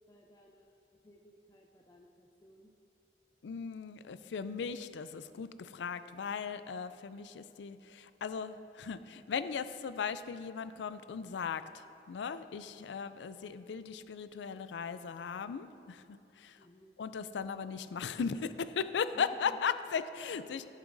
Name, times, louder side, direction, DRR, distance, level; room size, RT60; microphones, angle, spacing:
voice 1, 0.1-0.8 1.0-2.7 12.5-12.6 16.6-16.9 19.1-19.6, left 1 dB, 20° left, 0 dB, 0.5 m, -58 dB
voice 2, 3.4-16.7 17.0-20.7, left 6 dB, 85° left, 12 dB, 0.4 m, -37 dB
11.5 x 10.0 x 2.6 m, 2.8 s
head